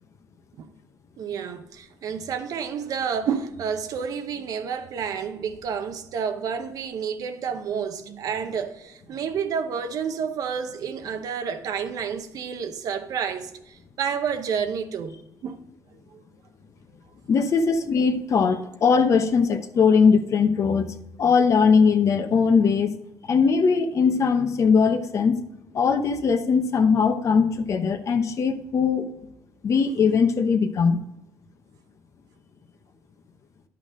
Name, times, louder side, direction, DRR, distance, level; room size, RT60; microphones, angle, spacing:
voice 1, 1.2-15.6 16.1-16.2, right 7 dB, 65° right, 0.9 m, -30 dB
voice 2, 17.3-23.0 23.3-25.4 25.7-29.1 29.6-31.0, left 5 dB, 50° left, 0.9 m, -20 dB
10.5 x 5.9 x 3.8 m
cardioid pair, 100°, 7 cm